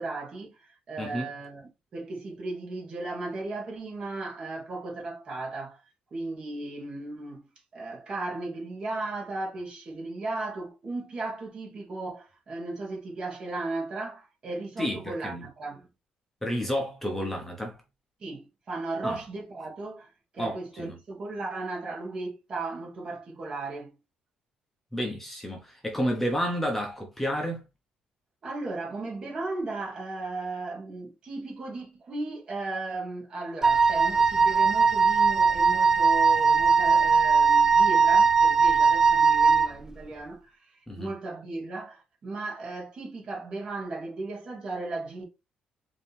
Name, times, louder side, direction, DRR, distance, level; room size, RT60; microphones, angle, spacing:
voice 1, 0.0-5.8 6.1-7.5 7.7-15.9 18.2-23.9 28.4-45.2, right 2 dB, 40° right, 1.8 m, -36 dB
voice 2, 1.0-1.3 14.8-15.5 16.4-17.8 19.0-19.2 20.4-21.0 24.9-27.6 40.9-41.1, equal, 10° left, 0.9 m, -31 dB
Wind instrument woodwind instrument, 33.6-39.7, right 5 dB, 20° right, 0.4 m, -20 dB
4.8 x 2.9 x 3.4 m
cardioid pair, 135°, 3 cm